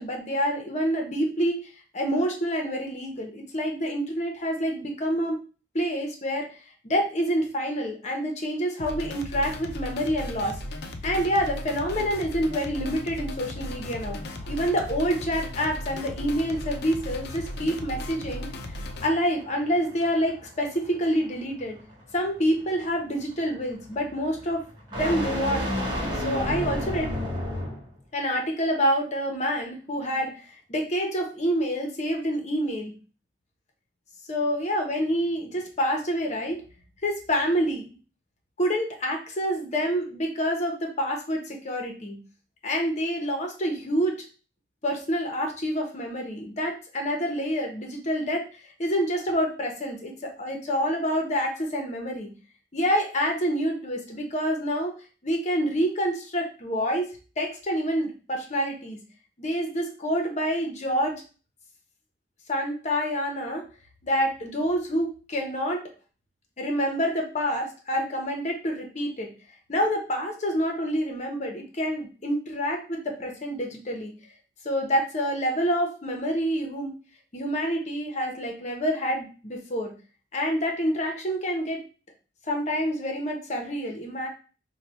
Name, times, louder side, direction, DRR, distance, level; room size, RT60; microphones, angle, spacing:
voice 1, 0.0-1.6 1.9-5.4 5.7-6.6 6.8-10.6 11.0-14.2 14.5-18.5 19.0-21.8 22.1-24.6 24.9-25.6 26.1-27.1 28.1-32.9 34.3-36.6 37.0-37.9 38.6-42.2 42.6-44.2 44.8-52.3 52.7-55.0 55.2-59.0 59.4-61.1 62.5-63.6 64.0-65.9 66.6-69.3 69.7-74.1 74.6-76.9 77.3-79.9 80.3-81.8 82.5-84.3, equal, 40° left, 2 dB, 0.9 m, -27 dB
sound 1, 8.8-19.1, left 1 dB, 60° left, 0.5 m, -36 dB
sound 2, 13.3-27.9, equal, 25° right, 1.1 m, -35 dB
3.2 x 2.3 x 4.2 m, 0.36 s
head